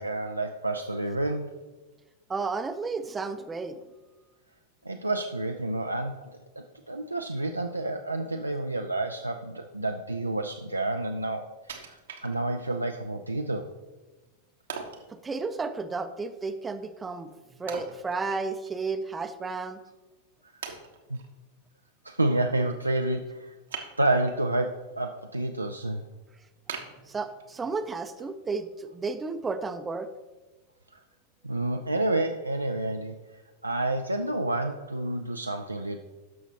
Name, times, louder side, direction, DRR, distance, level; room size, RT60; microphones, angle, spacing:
voice 1, 0.0-1.6 4.9-6.2 6.6-13.7 21.1-21.2 22.0-23.6 24.0-26.0 31.4-36.0, right 2 dB, 85° right, 4 dB, 0.4 m, -29 dB
voice 2, 2.3-3.8 15.1-17.3 17.6-19.8 27.0-30.1, right 4 dB, 15° right, 10 dB, 0.5 m, -32 dB
Wood, 11.7-12.8 13.3-13.4 14.7-15.1 17.7-18.8 19.1-19.2 19.9-20.0 20.6-21.3 23.7-24.4 24.9-25.4 25.8-25.9 26.7-27.7 28.2-28.3, right 6 dB, 65° right, 0.9 m, -41 dB
12.5 x 5.9 x 2.9 m, 1.2 s
figure-of-eight pair, 90°, 0 cm